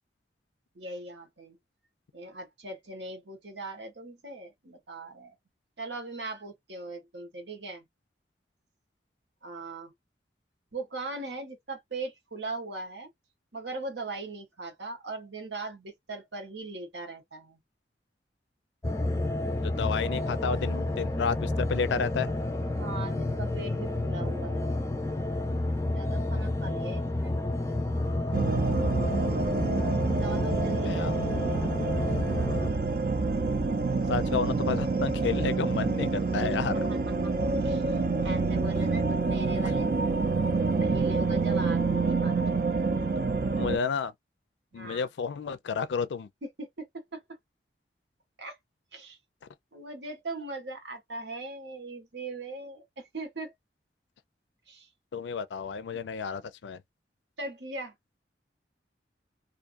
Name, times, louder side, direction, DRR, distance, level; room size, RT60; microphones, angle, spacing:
voice 1, 0.7-1.6 2.1-5.3 5.8-7.9 9.4-9.9 10.7-13.1 13.5-17.6 22.7-24.7 25.8-27.8 30.1-31.4 36.7-37.3 37.6-40.0 40.8-42.5 44.7-45.1 46.4-47.2 48.4-48.6 48.9-49.2 49.7-53.5 54.7-54.9 57.4-57.9, right 2 dB, 80° right, 1.2 m, -40 dB
sound 1, 18.8-32.7, left 2 dB, 15° left, 0.4 m, -30 dB
voice 2, 19.6-22.3 30.8-31.1 34.1-36.9 43.6-44.1 44.7-46.3 55.1-56.8, left 5 dB, 85° left, 0.4 m, -31 dB
sound 2, 28.3-43.8, right 4 dB, 50° right, 0.5 m, -27 dB
2.5 x 2.3 x 2.5 m
head